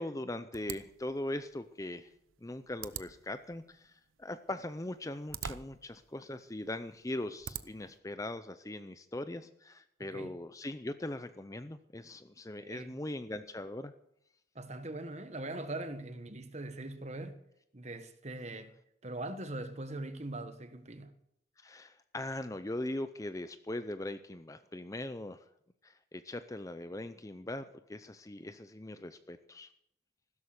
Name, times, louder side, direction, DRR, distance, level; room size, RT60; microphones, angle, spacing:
voice 1, 0.0-2.1 2.4-13.9 21.6-25.4 25.8-29.7, left 1 dB, 15° left, 0.5 m, -40 dB
sound 1, 0.5-8.0, right 8 dB, 85° right, 0.8 m, -47 dB
voice 2, 12.6-12.9 14.5-17.4 17.7-18.7 19.0-21.1, right 2 dB, 35° right, 1.3 m, -41 dB
15.5 x 13.0 x 6.5 m
head